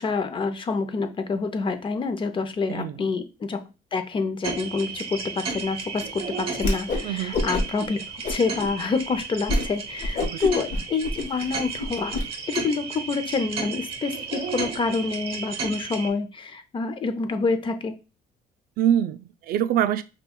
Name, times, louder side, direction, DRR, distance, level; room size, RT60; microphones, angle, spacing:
voice 1, 0.0-3.6 3.9-6.0 6.4-12.2 12.5-17.9, left 4 dB, 30° left, 0.6 m, -27 dB
voice 2, 2.7-3.1 7.0-7.4 10.2-10.5 18.8-20.0, right 10 dB, 60° right, 0.4 m, -25 dB
sound 1, 4.4-16.1, right 5 dB, 35° right, 0.9 m, -34 dB
Whoosh swoosh swish, 6.6-7.1 7.3-7.9 8.2-8.7 9.1-9.2 9.5-9.7 10.0-12.2, left 2 dB, 45° left, 0.9 m, -26 dB
5.3 x 2.2 x 2.2 m
cardioid pair, 110°, 17 cm